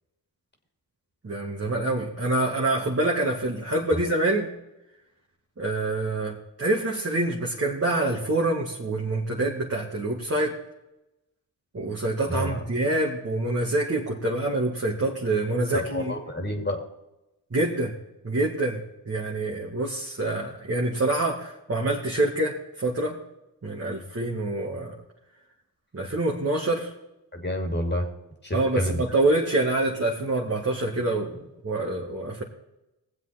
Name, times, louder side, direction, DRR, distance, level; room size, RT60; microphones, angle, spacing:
voice 1, 1.2-4.5 5.6-10.6 11.7-16.1 17.5-17.9 18.2-18.8 19.1-23.2 23.6-25.0 25.9-26.9 28.5-32.4, right 2 dB, 30° right, -2 dB, 2.2 m, -26 dB
voice 2, 12.3-12.6 15.7-16.8 27.3-28.1 28.4-29.0, left 1 dB, 25° left, 3 dB, 2.7 m, -28 dB
18.5 x 7.7 x 4.4 m, 0.94 s
supercardioid pair, 45°, 45 cm